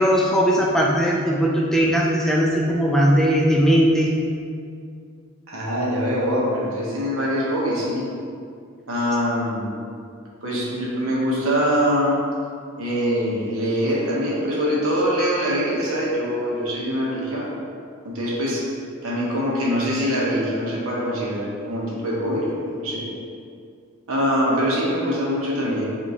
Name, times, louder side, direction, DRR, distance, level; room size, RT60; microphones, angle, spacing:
voice 1, 0.0-4.1, equal, ahead, -3 dB, 0.3 m, -19 dB
voice 2, 5.5-8.0 8.9-9.7 10.4-12.2 12.8-17.5 18.0-18.7 19.0-23.1 24.1-25.9, equal, 70° right, -5 dB, 1.0 m, -23 dB
5.4 x 2.8 x 2.9 m, 2.3 s
head